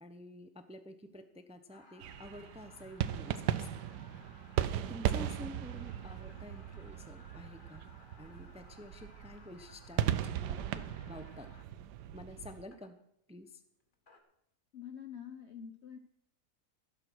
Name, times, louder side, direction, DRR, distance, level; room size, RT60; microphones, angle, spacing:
voice 1, 0.0-3.7 4.9-7.9 8.2-11.5 12.1-13.0 13.3-13.6, left 1 dB, 5° right, 8 dB, 0.5 m, -49 dB
sound 1, 1.7-11.7 12.7-12.9 13.8-14.2, left 3 dB, 30° left, 1.6 m, -60 dB
sound 2, 2.0-12.6, right 11 dB, 90° right, 1.3 m, -37 dB
voice 2, 14.7-16.0, left 8 dB, 50° left, 6 dB, 0.9 m, -46 dB
16.0 x 7.6 x 6.2 m, 0.75 s
omnidirectional pair, 1.8 m